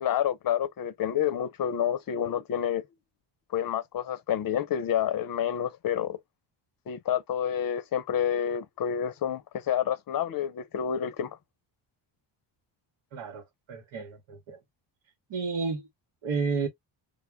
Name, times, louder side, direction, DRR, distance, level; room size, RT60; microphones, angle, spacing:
voice 1, 0.0-2.8 3.5-6.2 6.9-11.3, left 9 dB, 45° left, 0.6 m, -29 dB
voice 2, 13.1-13.4 13.7-14.6 15.3-15.8 16.2-16.7, right 4 dB, 70° right, 1.1 m, -31 dB
2.2 x 2.1 x 3.3 m
cardioid pair, 75°, 48 cm